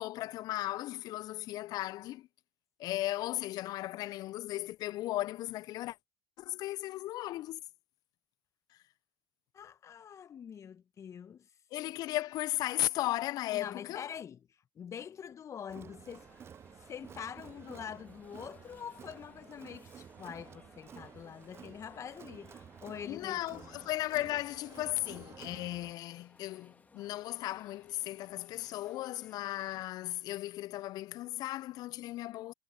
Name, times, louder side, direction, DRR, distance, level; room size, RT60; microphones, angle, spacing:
voice 1, 0.0-2.3 2.8-6.0 6.4-7.6 11.7-14.0 23.1-32.5, left 16 dB, 55° left, 0.6 m, -36 dB
voice 2, 9.5-11.5 13.5-16.3 16.9-23.9, left 8 dB, 40° left, 1.6 m, -45 dB
Crowd, 15.7-25.9, right 8 dB, 35° right, 0.4 m, -52 dB
sound 1, 16.1-29.9, left 3 dB, 20° left, 2.2 m, -63 dB
hypercardioid pair, 70°, 8 cm